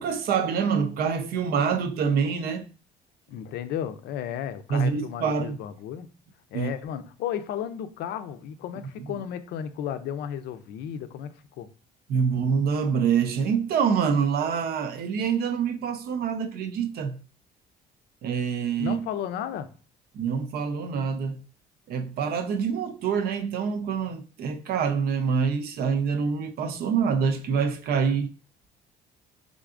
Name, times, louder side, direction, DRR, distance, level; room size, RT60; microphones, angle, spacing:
voice 1, 0.0-2.7 4.7-5.6 6.5-6.7 12.1-17.2 18.2-19.0 20.1-21.4 21.9-28.3, right 6 dB, 65° right, 0.6 m, -26 dB
voice 2, 3.3-6.1 6.5-11.7 18.8-19.7, left 9 dB, 75° left, 0.5 m, -34 dB
3.7 x 3.5 x 2.5 m
cardioid pair, 110°, 17 cm